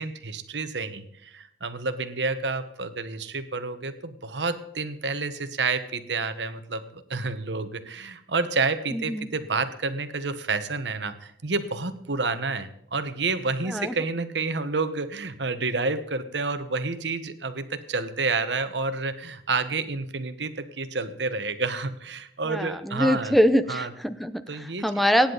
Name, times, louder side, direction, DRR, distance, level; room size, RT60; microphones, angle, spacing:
voice 1, 0.0-23.3 23.7-23.9 24.5-24.9, right 3 dB, 90° right, 10 dB, 1.3 m, -29 dB
voice 2, 8.9-9.3 13.7-13.9 22.5-25.3, equal, ahead, 11 dB, 0.7 m, -24 dB
24.0 x 10.0 x 4.1 m, 0.75 s
head